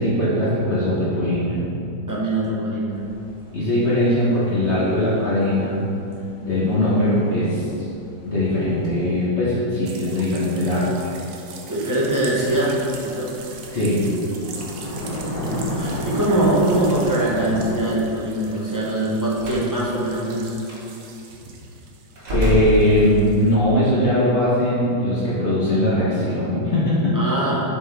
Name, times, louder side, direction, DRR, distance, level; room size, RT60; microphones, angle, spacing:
voice 1, 0.0-1.6 3.5-5.9 6.4-7.9 8.2-10.9 13.7-14.1 22.3-27.2, left 1 dB, 45° left, -9 dB, 1.3 m, -20 dB
voice 2, 2.1-3.0 11.7-12.7 13.0-13.3 15.3-20.5 27.1-27.6, right 1 dB, 15° right, -7 dB, 0.7 m, -22 dB
sound 1, 2.9-9.2 12.0-17.8, left 1 dB, 70° left, 1.7 m, -33 dB
sound 2, 9.9-23.6, right 5 dB, 65° right, 0.9 m, -42 dB
Slam, 19.4-19.7 20.6-20.8 22.2-23.4, left 1 dB, 40° right, 1.3 m, -25 dB
7.6 x 4.3 x 3.4 m, 2.7 s
omnidirectional pair, 2.0 m